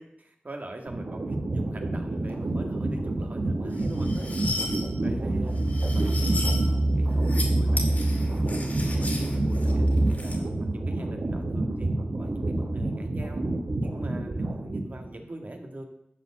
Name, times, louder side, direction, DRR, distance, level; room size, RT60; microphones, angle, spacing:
voice 1, 0.0-4.3 5.0-6.4 7.0-13.5 13.8-15.9, right 1 dB, 50° right, 3 dB, 1.8 m, -43 dB
sound 1, 0.9-15.1, right 2 dB, 75° right, 1.5 m, -29 dB
sound 2, 3.7-4.8 5.6-6.6 7.1-7.5 7.8-10.4, left 2 dB, 50° left, 2.3 m, -35 dB
sound 3, 4.8-10.1, right 1 dB, 25° right, 0.8 m, -26 dB
11.5 x 4.7 x 7.5 m, 0.80 s
wide cardioid pair, 75°, 3 cm